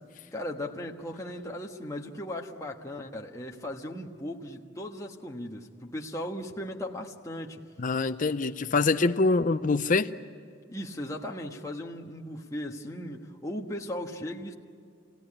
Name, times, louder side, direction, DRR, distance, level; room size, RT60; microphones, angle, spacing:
voice 1, 0.3-7.6 10.7-14.5, left 1 dB, 15° left, 0 dB, 1.4 m, -37 dB
voice 2, 7.8-10.1, left 3 dB, 45° left, 9 dB, 0.6 m, -25 dB
28.5 x 17.5 x 9.9 m, 2.3 s
head